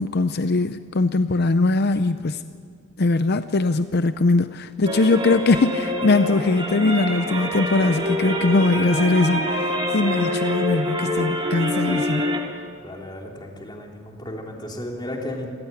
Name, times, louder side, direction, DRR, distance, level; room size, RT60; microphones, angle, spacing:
voice 1, 0.0-2.4 3.0-12.3, left 3 dB, 55° left, 11 dB, 0.6 m, -21 dB
sound 1, 4.9-12.4, left 1 dB, 25° right, 2.9 m, -25 dB
voice 2, 12.8-15.5, left 1 dB, 20° left, 0 dB, 2.9 m, -34 dB
27.5 x 16.0 x 8.8 m, 2.1 s
head